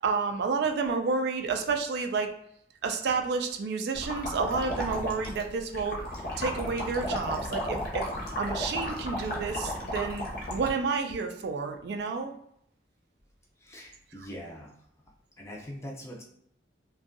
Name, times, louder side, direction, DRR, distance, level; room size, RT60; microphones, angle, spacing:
voice 1, 0.0-2.3 2.8-6.0 6.4-8.1 8.4-10.2 10.5-12.3 14.2-14.3, right 4 dB, 60° right, 5 dB, 0.3 m, -30 dB
sound 1, 3.9-10.7, left 1 dB, 55° left, 0.7 m, -34 dB
voice 2, 13.6-14.7 15.4-16.2, equal, 15° left, -1 dB, 0.4 m, -42 dB
2.5 x 2.2 x 2.5 m, 0.72 s
head